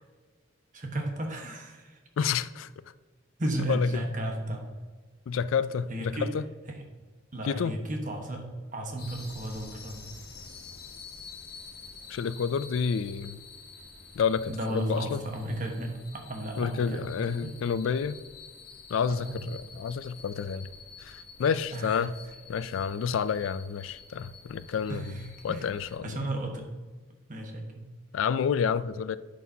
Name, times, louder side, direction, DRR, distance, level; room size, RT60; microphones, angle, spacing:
voice 1, 0.7-2.0 3.4-4.6 5.9-6.3 7.3-10.0 14.5-17.5 19.1-19.3 21.7-22.0 24.9-25.2 25.5-25.7 26.0-26.7 27.3-27.8, right 1 dB, 40° right, 1.3 m, -34 dB
voice 2, 2.2-2.7 3.7-4.0 5.3-6.4 7.5-7.8 12.1-13.4 14.1-15.2 16.6-18.2 18.9-20.7 21.0-22.1 22.5-25.2 25.4-26.2 28.1-29.2, left 6 dB, 85° left, 0.3 m, -29 dB
sound 1, 9.0-26.0, left 4 dB, 55° left, 1.3 m, -48 dB
11.0 x 6.5 x 2.8 m
head